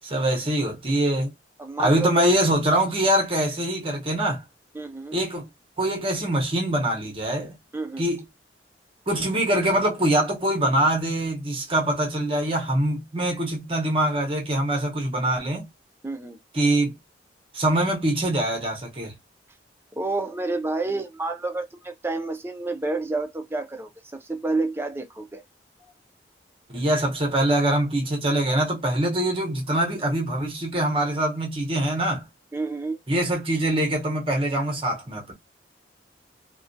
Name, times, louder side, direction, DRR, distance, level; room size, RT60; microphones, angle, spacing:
voice 1, 0.0-1.3 1.8-4.4 5.1-5.5 5.8-7.5 8.0-8.2 9.1-15.7 16.5-16.9 17.5-19.1 26.7-32.2 33.1-35.3, right 1 dB, 30° right, 0.7 m, -23 dB
voice 2, 1.6-2.3 4.7-5.1 7.7-8.1 16.0-16.4 19.9-25.4 32.5-33.0, right 3 dB, 15° right, 0.4 m, -29 dB
2.2 x 2.2 x 2.5 m
head